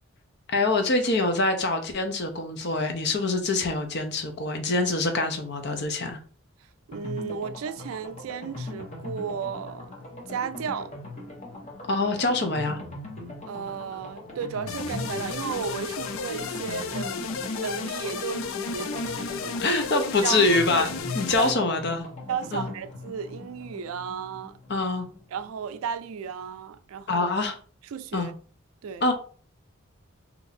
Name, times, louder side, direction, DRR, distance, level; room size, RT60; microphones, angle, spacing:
voice 1, 0.5-6.2 11.9-12.8 19.6-22.1 22.5-22.7 24.7-25.1 27.1-27.6 28.1-28.3 29.0-29.1, left 3 dB, 55° left, 0.7 m, -25 dB
sound 1, 6.9-25.5 25.8-25.9 26.2-26.3, left 2 dB, 35° left, 1.0 m, -40 dB
voice 2, 6.9-9.9 10.3-10.9 13.5-17.2 17.5-19.6 19.9-20.4 21.4-21.5 22.3-24.6 25.3-27.3 27.9-28.3 28.8-29.0, right 7 dB, 90° right, 0.3 m, -34 dB
sound 2, 14.7-21.5, left 5 dB, 85° left, 0.4 m, -33 dB
2.9 x 2.6 x 4.1 m
head